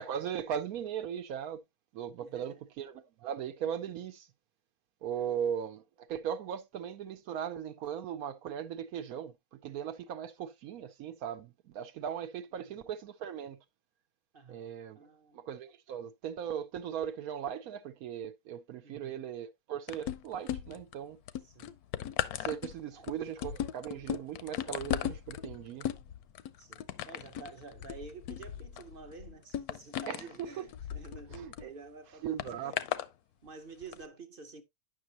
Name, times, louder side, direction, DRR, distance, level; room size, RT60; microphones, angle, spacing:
voice 1, 0.0-1.6 1.9-4.3 5.0-13.6 14.5-15.0 15.3-21.2 22.4-25.9 30.1-30.7 31.3-31.7 32.2-32.7, right 9 dB, 80° right, 1.1 m, -38 dB
voice 2, 2.2-2.6 5.2-5.4 14.3-15.4 18.8-19.2 21.4-21.7 22.9-23.1 26.6-32.9 33.4-34.6, right 4 dB, 45° right, 0.9 m, -50 dB
sound 1, 19.9-20.9 21.3-31.6 32.4-33.1 33.8-33.9, left 10 dB, 85° left, 1.1 m, -37 dB
9.4 x 6.1 x 2.8 m
omnidirectional pair, 1.6 m